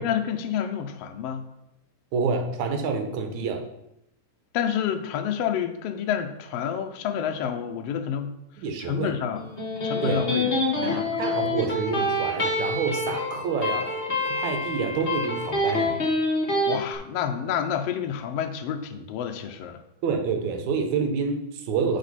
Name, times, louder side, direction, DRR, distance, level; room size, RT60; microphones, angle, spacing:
voice 1, 0.0-1.4 4.5-8.3 8.9-9.5 9.8-11.2 16.7-19.8, left 8 dB, 80° left, 5 dB, 1.4 m, -29 dB
voice 2, 2.1-3.7 8.6-9.1 10.0-10.2 10.8-13.9 14.2-16.0 20.0-22.0, right 5 dB, 75° right, 4 dB, 2.2 m, -28 dB
Electric guitar, 9.4-16.8, left 2 dB, 60° left, 0.6 m, -26 dB
10.0 x 4.5 x 4.1 m, 0.84 s
omnidirectional pair, 3.6 m